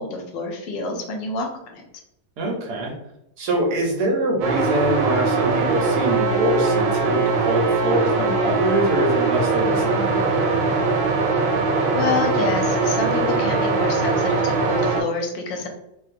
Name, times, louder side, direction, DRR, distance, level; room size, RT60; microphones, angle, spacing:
voice 1, 0.0-1.8 11.9-15.7, left 4 dB, 85° left, 3 dB, 1.4 m, -28 dB
voice 2, 2.4-2.9 3.4-10.8, right 1 dB, 65° right, 0 dB, 1.2 m, -24 dB
sound 1, 4.4-15.0, right 4 dB, 85° right, 1.3 m, -21 dB
3.1 x 2.7 x 2.5 m, 0.83 s
omnidirectional pair, 2.0 m